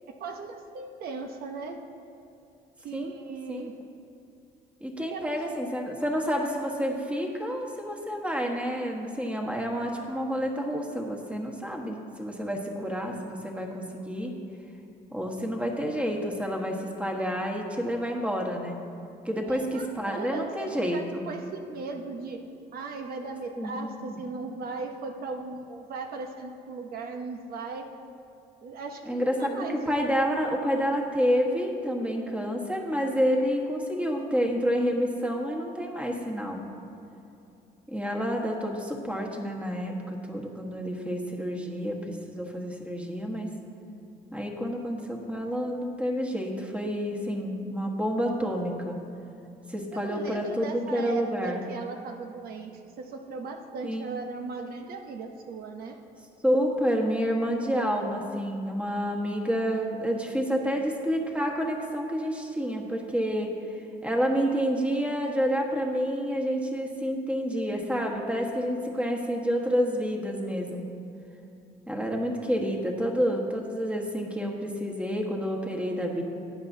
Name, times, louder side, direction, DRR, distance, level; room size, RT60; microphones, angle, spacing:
voice 1, 0.1-1.8 2.8-3.7 5.1-5.4 19.4-22.4 22.7-27.9 28.6-29.8 49.9-56.0, right 4 dB, 65° right, 4 dB, 0.8 m, -38 dB
voice 2, 4.8-14.3 15.1-18.8 19.2-21.2 23.6-24.1 29.0-36.6 37.9-43.5 44.3-49.0 49.7-51.7 53.8-54.1 56.4-63.5 64.0-70.9 71.9-76.2, equal, 5° right, 1 dB, 1.4 m, -29 dB
18.0 x 8.9 x 2.7 m, 2.8 s
cardioid pair, 110°, 17 cm